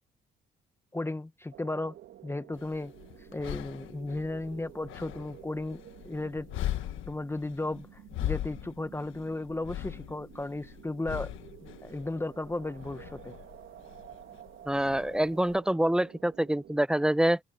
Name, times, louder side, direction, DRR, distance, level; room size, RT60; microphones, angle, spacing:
voice 1, 0.9-2.0 2.2-2.9 3.3-6.5 7.1-11.3 11.6-13.3, left 2 dB, 10° left, 1.0 m, -35 dB
sound 1, 1.5-16.8, right 12 dB, 80° right, 2.3 m, -52 dB
sound 2, 2.5-15.6, left 13 dB, 85° left, 1.3 m, -40 dB
voice 2, 14.7-17.4, right 1 dB, 5° right, 0.5 m, -26 dB
open air
cardioid pair, 90°, 20 cm